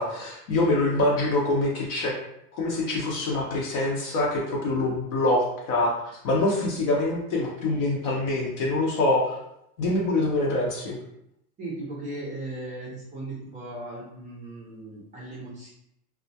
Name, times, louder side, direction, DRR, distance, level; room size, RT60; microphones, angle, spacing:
voice 1, 0.0-2.1 2.6-9.4 9.8-11.0, left 2 dB, 40° left, -2 dB, 0.6 m, -25 dB
voice 2, 11.6-15.7, right 2 dB, 15° right, -6 dB, 0.4 m, -37 dB
2.2 x 2.1 x 2.7 m, 0.79 s
hypercardioid pair, 110°, 48 cm